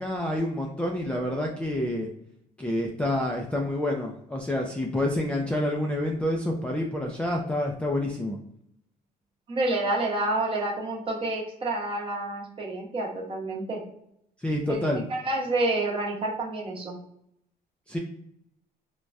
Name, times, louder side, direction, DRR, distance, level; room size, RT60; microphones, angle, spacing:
voice 1, 0.0-2.1 2.6-8.4 14.4-15.0 17.9-18.0, left 1 dB, 5° left, -2 dB, 0.3 m, -28 dB
voice 2, 9.5-13.8 14.7-14.8 15.1-17.0, right 2 dB, 30° right, -3 dB, 0.9 m, -28 dB
3.3 x 2.2 x 2.5 m, 0.74 s
cardioid pair, 110°, 17 cm